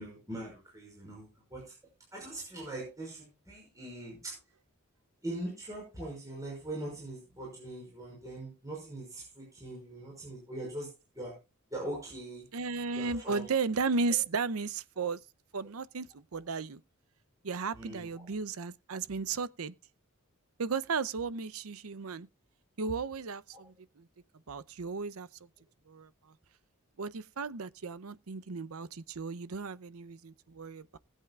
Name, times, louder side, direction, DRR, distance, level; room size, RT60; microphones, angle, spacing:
voice 1, 0.0-1.7 2.1-4.4 5.2-11.4 11.7-12.5 13.0-13.5 17.8-18.3 23.5-23.6, right 1 dB, 15° right, 5.7 m, -42 dB
voice 2, 12.5-15.2 15.5-16.8 17.4-19.7 20.6-22.3 22.8-24.1 24.5-25.3 25.9-26.3 27.0-31.0, right 4 dB, 80° right, 0.7 m, -35 dB
20.0 x 8.4 x 2.4 m
head